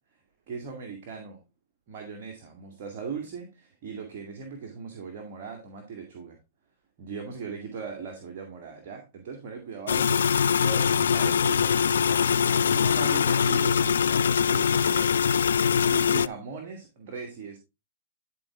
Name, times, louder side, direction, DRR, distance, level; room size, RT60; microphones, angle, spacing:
voice 1, 0.5-1.4 1.9-6.4 7.0-15.1 15.4-17.6, right 5 dB, 50° right, 2.2 m, -39 dB
sound 1, 9.9-16.3, left 7 dB, 70° left, 0.3 m, -23 dB
12.0 x 4.5 x 3.6 m
figure-of-eight pair, 105°, 0 cm